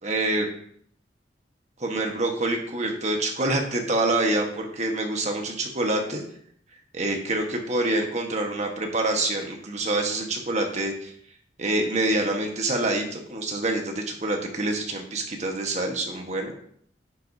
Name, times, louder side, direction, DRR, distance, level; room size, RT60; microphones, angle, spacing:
voice 1, 0.0-0.5 1.8-6.2 6.9-11.1 11.6-16.5, right 2 dB, 40° right, 2 dB, 1.4 m, -26 dB
10.0 x 7.7 x 2.8 m, 0.64 s
head